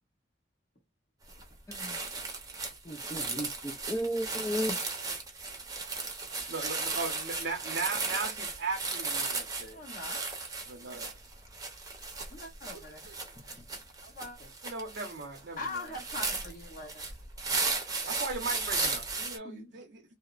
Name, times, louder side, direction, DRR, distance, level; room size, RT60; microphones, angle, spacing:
sound 1, 1.3-1.4 1.7-19.4, right 3 dB, 20° right, 0.7 m, -35 dB
voice 1, 2.9-4.8, equal, 15° left, 0.4 m, -34 dB
voice 2, 6.5-9.8 10.7-11.1 14.6-15.9 18.0-20.0, right 3 dB, 70° right, 0.7 m, -37 dB
voice 3, 9.7-10.2 12.3-13.1 14.0-14.5 15.6-17.1 19.4-19.7, left 2 dB, 50° left, 1.2 m, -42 dB
2.8 x 2.0 x 2.4 m
head